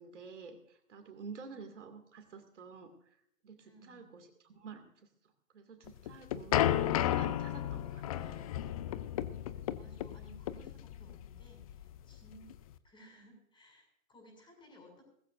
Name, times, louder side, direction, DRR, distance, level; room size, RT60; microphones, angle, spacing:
voice 1, 0.0-3.2 3.4-4.8 5.5-8.0, right 5 dB, 60° right, 6 dB, 2.4 m, -49 dB
voice 2, 3.6-4.2 8.1-9.0 9.7-15.1, equal, 10° left, 2 dB, 6.6 m, -59 dB
sound 1, 5.9-12.7, left 12 dB, 25° left, 0.6 m, -33 dB
20.0 x 14.5 x 2.6 m, 0.71 s
figure-of-eight pair, 120°, 40 cm